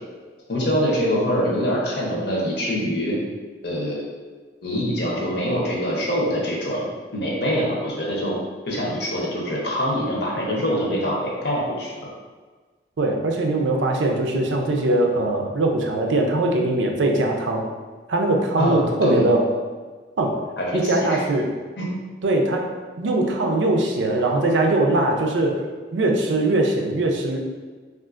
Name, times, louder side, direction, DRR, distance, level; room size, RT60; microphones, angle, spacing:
voice 1, 0.5-3.2 3.6-4.0 4.6-6.9 7.1-8.3 8.7-12.1 18.6-19.3 20.6-21.2 21.8-21.9, equal, 60° left, -3 dB, 0.7 m, -24 dB
voice 2, 13.0-17.7 18.1-19.5 20.2-20.4 20.7-21.5 22.2-22.7 23.0-25.6 25.9-27.4, right 2 dB, 80° right, 2 dB, 0.5 m, -21 dB
3.6 x 2.4 x 2.4 m, 1.4 s
head